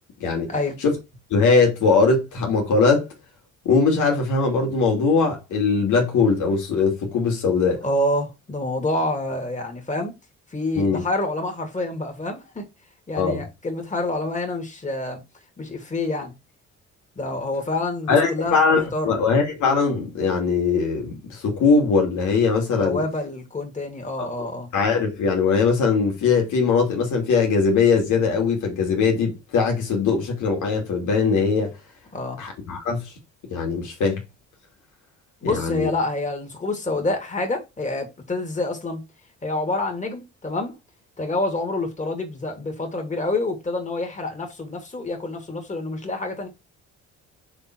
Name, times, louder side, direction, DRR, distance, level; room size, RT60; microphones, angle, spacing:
voice 1, 0.5-0.8 7.8-10.1 10.5-12.6 13.1-15.2 15.6-16.3 17.2-19.2 22.8-24.7 32.1-32.4 35.4-39.0 39.4-40.8 41.2-46.5, left 2 dB, 25° left, 2.6 m, -27 dB
voice 2, 1.3-3.1 3.6-7.8 10.8-11.0 13.2-13.4 18.1-23.0 24.2-24.3 24.7-31.7 32.4-33.0 33.5-34.2 35.4-35.9, left 4 dB, 80° left, 2.7 m, -21 dB
6.6 x 3.9 x 4.6 m
cardioid pair, 90°, 30 cm